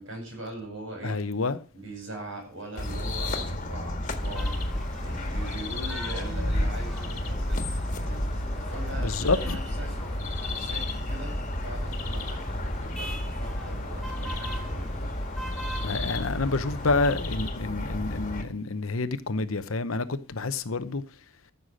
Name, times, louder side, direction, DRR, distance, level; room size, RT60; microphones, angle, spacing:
voice 1, 0.0-1.2 1.7-4.5 5.0-8.2 8.6-9.9 10.6-11.3 11.6-14.9 17.7-17.9, right 1 dB, 60° right, 7.7 m, -41 dB
voice 2, 1.0-1.6 9.0-9.6 15.8-21.0, left 3 dB, 70° left, 0.9 m, -28 dB
sound 1, 2.8-18.4, left 1 dB, 35° left, 1.9 m, -31 dB
sound 2, 4.2-17.2, equal, ahead, 4.1 m, -42 dB
14.0 x 6.9 x 6.5 m
head